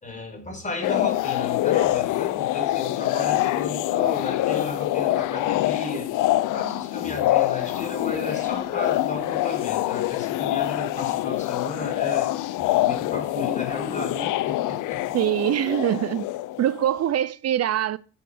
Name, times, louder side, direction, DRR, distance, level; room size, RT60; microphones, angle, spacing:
voice 1, 0.0-6.1 6.5-15.1, left 2 dB, 25° left, 4.6 m, -34 dB
sound 1, 0.8-17.0, left 15 dB, 90° left, 0.6 m, -25 dB
voice 2, 15.1-16.3 16.6-18.0, right 11 dB, 55° right, 0.5 m, -23 dB
11.0 x 7.0 x 5.0 m
cardioid pair, 90°, 30 cm